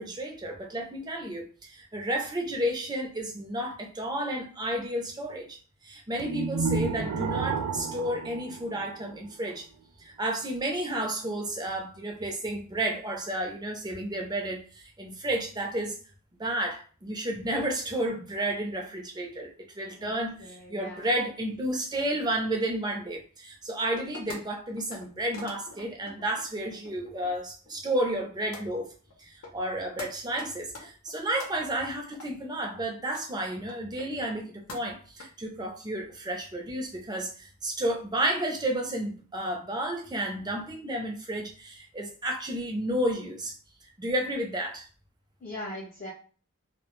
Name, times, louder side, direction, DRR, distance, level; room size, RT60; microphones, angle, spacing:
voice 1, 0.0-5.6 5.8-9.6 10.0-16.0 16.4-28.9 29.2-43.6 44.0-44.9, right 1 dB, 20° right, 1 dB, 0.5 m, -32 dB
sound 1, 6.2-9.4, right 5 dB, 85° right, 0.3 m, -31 dB
voice 2, 20.4-21.1 45.4-46.1, left 1 dB, 40° left, -5 dB, 0.5 m, -40 dB
sound 2, 24.0-24.4 24.8-25.1 25.3-27.3 27.7-28.2 28.5-28.7 29.1-29.2 29.4-29.7 30.0-30.1 30.4-31.5 32.1-32.3 32.7-32.8 33.1-33.2 33.7-34.4 34.7-35.2, left 2 dB, 80° left, 0.7 m, -44 dB
2.1 x 2.1 x 2.9 m, 0.39 s
head